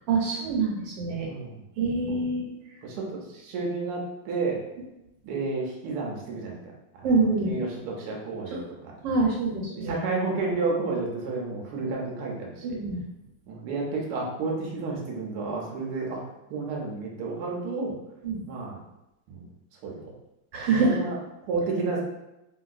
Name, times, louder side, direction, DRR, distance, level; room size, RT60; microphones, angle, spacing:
voice 1, 0.1-1.3 1.8-2.5 7.0-7.6 9.0-10.0 12.6-13.0 18.2-18.4 20.5-21.0, right 3 dB, 90° right, -2 dB, 1.5 m, -25 dB
voice 2, 1.3-1.6 2.1-2.2 2.8-4.6 5.2-6.6 6.9-7.2 7.5-9.0 9.8-12.8 13.5-16.2 16.5-18.0 18.5-18.8 19.3-19.5 19.8-20.1 20.7-21.2 21.5-22.0, right 3 dB, 70° right, -1 dB, 1.1 m, -31 dB
2.9 x 2.7 x 2.4 m, 0.92 s
omnidirectional pair, 2.0 m